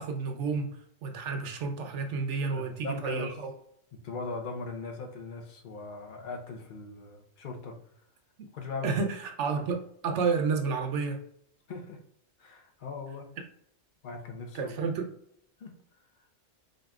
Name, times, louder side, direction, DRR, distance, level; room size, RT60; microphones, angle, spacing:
voice 1, 0.0-3.5 8.8-11.2 14.5-15.1, right 5 dB, 70° right, 5 dB, 0.9 m, -31 dB
voice 2, 2.5-3.4 3.9-7.8 8.5-9.0 11.7-12.0 12.4-13.3 14.0-14.9 15.6-15.8, left 3 dB, 50° left, 3 dB, 0.8 m, -39 dB
5.1 x 2.6 x 2.3 m, 0.70 s
omnidirectional pair, 1.3 m